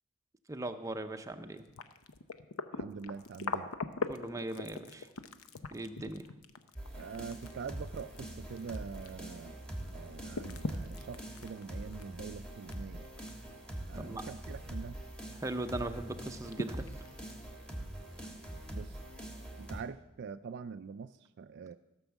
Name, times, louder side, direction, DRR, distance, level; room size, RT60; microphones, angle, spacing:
voice 1, 0.5-1.6 4.1-5.1 5.7-6.3 13.9-14.2 15.4-16.9, right 1 dB, 15° right, 7 dB, 0.6 m, -39 dB
sound 1, 1.6-9.5 9.8-12.7 13.1-13.5 13.9-14.0 15.3-15.4 15.8-15.9 16.3-17.5 18.3-18.4, left 4 dB, 75° left, 0.7 m, -41 dB
voice 2, 2.8-3.7 6.9-9.6 9.9-13.1 13.9-15.0 18.2-18.3 18.7-19.0 19.6-21.8, right 5 dB, 50° right, 11 dB, 0.3 m, -44 dB
sound 2, 6.8-19.8, right 1 dB, 5° left, 1.6 m, -44 dB
15.5 x 6.2 x 7.1 m, 1.0 s
head